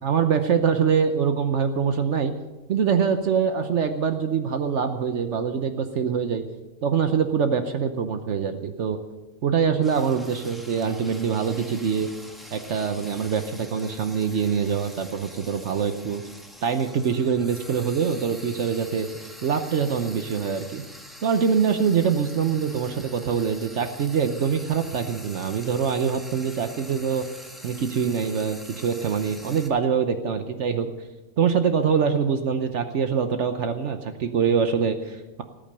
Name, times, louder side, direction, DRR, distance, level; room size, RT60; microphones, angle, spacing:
voice 1, 0.0-2.3 2.7-6.4 6.8-9.0 9.4-12.1 12.5-16.2 16.6-19.1 19.4-20.8 21.2-27.2 27.6-30.9 31.4-35.4, right 6 dB, 70° right, 7 dB, 1.2 m, -24 dB
Frying (food), 9.8-29.7, equal, ahead, 1.6 m, -45 dB
19.0 x 8.9 x 6.6 m, 1.1 s
omnidirectional pair, 1.3 m